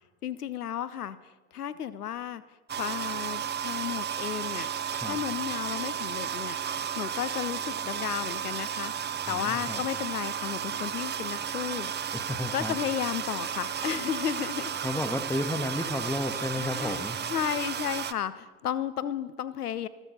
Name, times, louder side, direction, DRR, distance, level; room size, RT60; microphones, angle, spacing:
voice 1, 0.2-2.4 2.7-4.7 5.0-8.9 9.3-11.9 12.5-14.8 16.6-19.9, left 10 dB, 85° left, 15 dB, 0.5 m, -33 dB
sound 1, 2.7-18.1, right 8 dB, 25° right, 0.6 m, -33 dB
voice 2, 9.3-9.8 12.1-12.8 14.8-17.2, left 1 dB, 5° left, 8 dB, 1.1 m, -32 dB
15.0 x 13.0 x 4.2 m, 1.3 s
figure-of-eight pair, 50°, 45 cm